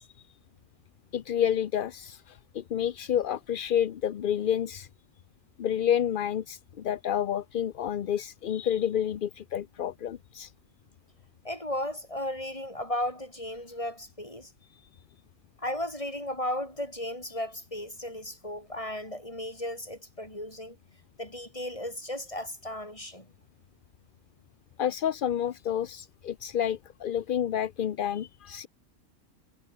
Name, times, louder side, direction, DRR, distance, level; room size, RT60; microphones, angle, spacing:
voice 1, 1.1-4.9 5.6-10.5 24.8-28.7, left 9 dB, 50° left, 0.7 m, -29 dB
voice 2, 11.4-14.5 15.6-20.8 21.2-23.3, left 1 dB, 25° left, 6.5 m, -35 dB
omnidirectional pair, 1.3 m